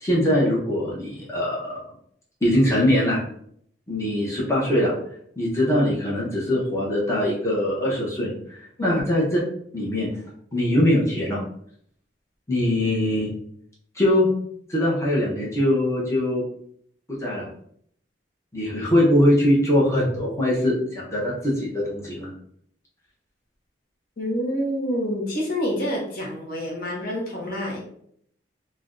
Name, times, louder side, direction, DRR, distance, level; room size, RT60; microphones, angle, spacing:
voice 1, 0.0-1.8 2.4-3.2 3.9-4.9 5.4-9.2 9.7-10.1 10.5-11.4 12.5-13.3 14.0-14.3 14.7-16.4 17.2-17.5 18.5-22.3, left 1 dB, 15° left, -6 dB, 0.7 m, -22 dB
voice 2, 24.2-27.8, equal, 55° left, -2 dB, 0.8 m, -27 dB
2.5 x 2.1 x 3.6 m, 0.66 s
head